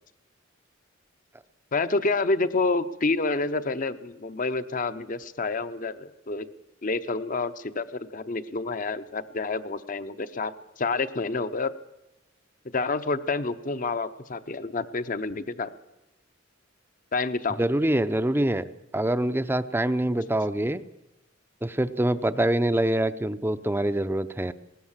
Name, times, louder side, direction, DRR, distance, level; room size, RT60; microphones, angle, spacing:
voice 1, 1.7-6.5 6.8-11.7 12.7-15.7 17.1-17.6 20.1-20.2, left 3 dB, 45° left, 12 dB, 0.8 m, -28 dB
voice 2, 17.6-20.8 21.6-24.5, right 1 dB, 10° right, 12 dB, 0.6 m, -25 dB
20.0 x 19.0 x 7.4 m, 0.97 s
head